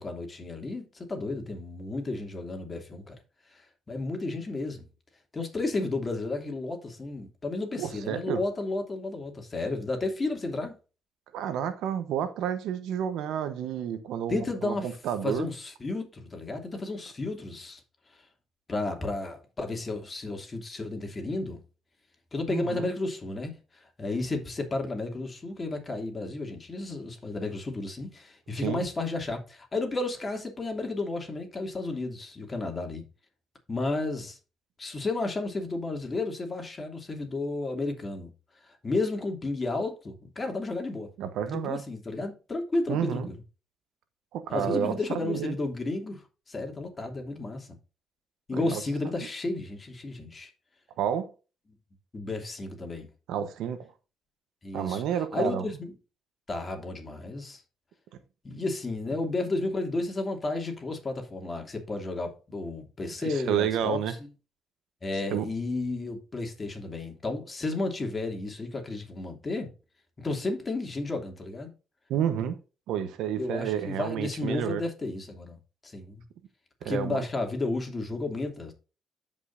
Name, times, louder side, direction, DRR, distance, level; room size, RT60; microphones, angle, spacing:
voice 1, 0.0-3.2 3.5-4.9 5.3-10.8 14.3-14.9 15.2-17.8 18.7-21.6 22.3-33.0 33.7-34.4 34.8-38.3 38.6-41.1 41.4-43.3 44.5-47.7 48.5-50.5 52.1-53.1 54.6-55.9 56.5-57.6 58.4-64.2 65.0-69.7 70.2-71.7 73.4-75.6 75.8-76.2 76.8-78.7, left 2 dB, 30° left, 2.8 m, -32 dB
voice 2, 7.8-8.4 11.3-15.5 22.5-22.9 28.6-28.9 41.2-41.8 42.9-43.3 44.3-45.5 48.5-48.8 51.0-51.3 53.3-53.9 54.7-55.7 63.2-64.2 65.3-65.4 72.1-72.6 72.9-74.8 76.8-77.2, right 9 dB, 85° right, 1.1 m, -30 dB
13.0 x 5.4 x 2.7 m
cardioid pair, 90°, 0 cm